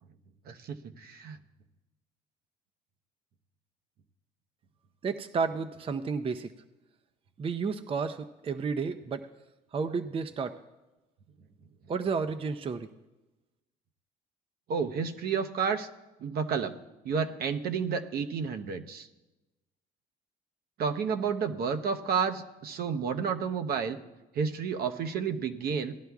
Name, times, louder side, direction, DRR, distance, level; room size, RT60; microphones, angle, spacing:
voice 1, 0.5-1.4 14.7-15.9 16.2-16.7 17.0-19.1 20.8-24.0 24.3-25.9, right 6 dB, 60° right, 6 dB, 0.8 m, -31 dB
voice 2, 5.0-6.5 7.4-9.3 9.7-10.6 11.9-12.9, right 5 dB, 30° right, 9 dB, 0.5 m, -31 dB
18.0 x 11.0 x 2.3 m, 1.1 s
supercardioid pair, 85°, 17 cm